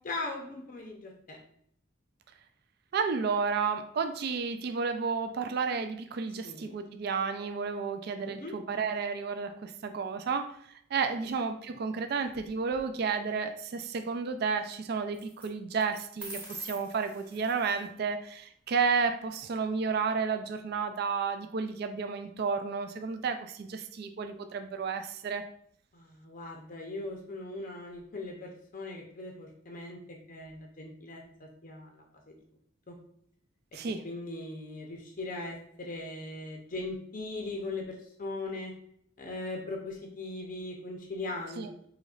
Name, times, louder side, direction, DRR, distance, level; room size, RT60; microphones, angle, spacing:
voice 1, 0.0-1.4 6.4-6.7 8.4-8.5 11.2-11.4 25.9-32.0 32.9-33.0 34.0-38.7 39.2-41.9, left 2 dB, 40° left, 1 dB, 0.6 m, -39 dB
voice 2, 2.9-10.6 10.9-25.5 33.7-34.0 41.6-41.7, right 5 dB, 50° right, 8 dB, 0.3 m, -32 dB
sound 1, 12.3-12.8 15.1-15.5 15.8-17.9, right 1 dB, 10° right, 0.9 m, -45 dB
5.0 x 3.0 x 2.4 m, 0.67 s
head